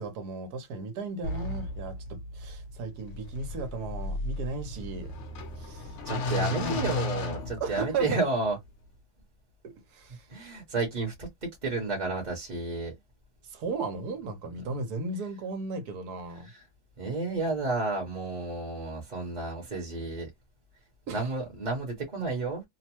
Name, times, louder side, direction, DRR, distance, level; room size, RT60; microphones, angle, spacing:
voice 1, 0.0-5.1 5.6-6.0 6.4-7.0 7.6-8.2 9.6-10.3 13.5-16.5 21.1-21.3, right 3 dB, 80° right, 1.4 m, -35 dB
sound 1, 1.2-8.2, left 2 dB, 55° left, 0.9 m, -35 dB
voice 2, 6.0-8.6 10.3-11.3 11.6-12.9 16.4-16.6 17.0-20.3 21.1-22.6, right 3 dB, 30° right, 1.0 m, -31 dB
3.0 x 2.0 x 2.9 m
omnidirectional pair, 1.7 m